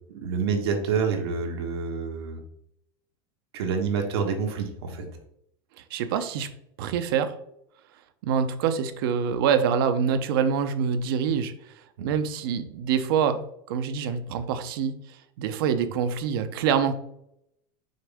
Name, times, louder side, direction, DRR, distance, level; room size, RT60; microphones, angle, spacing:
voice 1, 0.1-2.4 3.5-5.1 12.0-12.1, right 5 dB, 85° right, 2 dB, 1.5 m, -27 dB
voice 2, 5.9-6.5 6.8-7.3 8.2-11.7 12.0-14.9 15.4-16.9, right 7 dB, 65° right, 10 dB, 0.7 m, -25 dB
6.4 x 4.1 x 3.5 m, 0.75 s
supercardioid pair, 160°, 13 cm